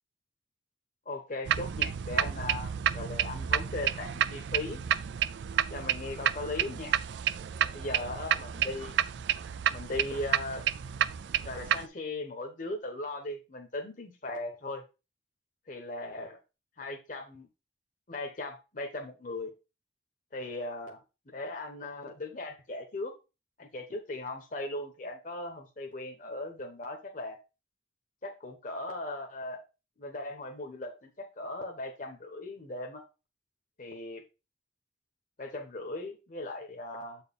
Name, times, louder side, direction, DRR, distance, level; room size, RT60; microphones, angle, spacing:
voice 1, 1.1-4.8 5.7-6.9 7.7-9.0 9.7-10.7 11.4-14.8 15.7-16.4 16.8-17.5 18.1-19.5 20.3-21.0 21.3-23.1 23.6-27.4 28.2-29.6 30.0-33.0 33.8-34.2 35.4-37.2, left 2 dB, 45° left, 3 dB, 1.0 m, -38 dB
sound 1, 1.4-11.8, right 9 dB, 75° right, 0.4 m, -30 dB
7.7 x 4.5 x 3.5 m, 0.29 s
head